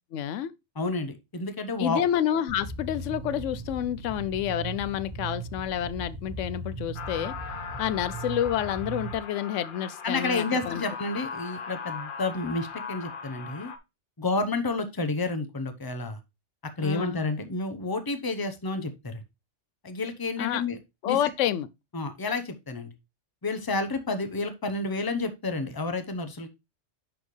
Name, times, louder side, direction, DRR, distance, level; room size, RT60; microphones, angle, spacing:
voice 1, 0.1-0.5 1.8-7.4 7.8-10.8 16.8-17.2 20.4-20.6 21.0-21.7, left 10 dB, 90° left, 0.9 m, -29 dB
voice 2, 0.8-2.0 10.0-13.7 14.2-16.2 16.8-19.2 19.8-20.8 21.1-21.2 21.9-22.9 23.4-26.5, left 3 dB, 20° left, 0.8 m, -30 dB
sound 1, 2.5-9.2, right 3 dB, 40° right, 1.6 m, -38 dB
sound 2, 7.0-13.8, left 6 dB, 50° left, 1.0 m, -39 dB
10.5 x 4.3 x 3.1 m
omnidirectional pair, 1.2 m